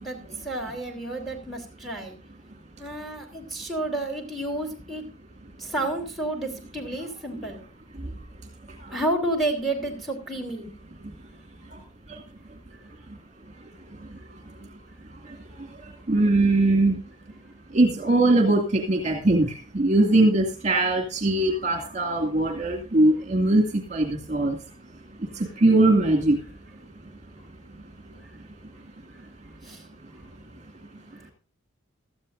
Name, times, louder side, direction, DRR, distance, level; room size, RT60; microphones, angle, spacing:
voice 1, 0.0-2.1 2.8-5.0 5.6-7.6 8.9-10.7 17.8-17.9 25.3-25.4 29.6-29.8, right 1 dB, ahead, 2 dB, 3.4 m, -30 dB
voice 2, 16.1-17.0 17.7-19.5 19.7-23.6 23.9-24.6 25.6-26.4, right 2 dB, 35° right, 2 dB, 2.2 m, -20 dB
16.5 x 13.5 x 2.6 m, 0.36 s
head